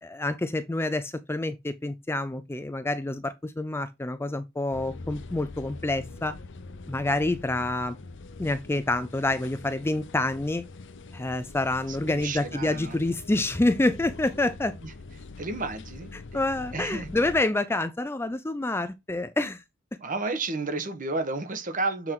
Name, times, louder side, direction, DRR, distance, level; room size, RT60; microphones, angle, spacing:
voice 1, 0.0-6.3 6.9-8.0 8.4-10.6 11.1-14.8 16.1-19.6, left 2 dB, 10° left, 0.4 m, -27 dB
sound 1, 4.7-17.4, left 3 dB, 60° left, 0.8 m, -44 dB
voice 2, 11.9-13.0 14.8-14.9 15.4-16.1 16.7-17.1 20.0-22.1, right 3 dB, 40° right, 1.3 m, -31 dB
7.6 x 4.5 x 3.8 m
head